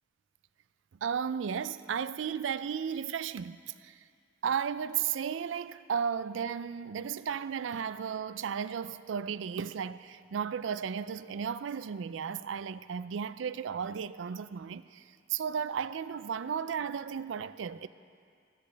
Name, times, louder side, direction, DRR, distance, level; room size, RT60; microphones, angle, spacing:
voice 1, 1.0-3.6 3.8-4.0 4.4-15.0 15.3-17.9, right 7 dB, 90° right, 0.4 m, -34 dB
17.0 x 13.5 x 3.4 m
head